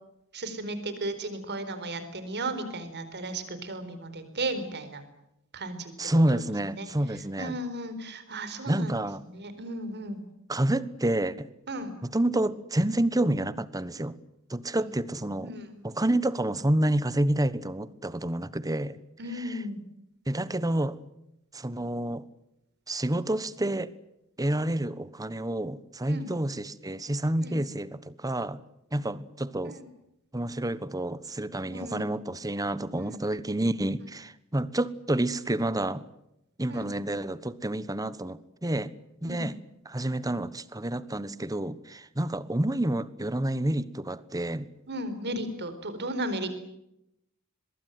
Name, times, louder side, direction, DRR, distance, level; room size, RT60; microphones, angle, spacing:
voice 1, 0.3-5.0 5.5-5.9 6.3-6.4 6.7-6.9 7.4-8.9 9.2-10.2 11.7-11.9 14.8-14.9 15.4-15.7 19.2-19.8 26.1-26.3 27.4-27.6 29.6-29.9 31.7-32.1 32.9-33.2 36.7-36.9 39.2-39.5 44.9-46.5, right 1 dB, 50° right, 4.4 m, -35 dB
voice 2, 6.0-7.6 8.7-9.2 10.5-11.5 12.0-14.2 14.5-15.5 15.8-19.0 19.3-19.6 20.3-21.0 21.5-22.2 22.9-23.9 24.4-28.6 28.9-29.8 30.3-36.0 36.6-38.9 39.2-39.5 39.8-44.7, right 1 dB, 15° right, 1.2 m, -29 dB
23.5 x 22.0 x 9.4 m
head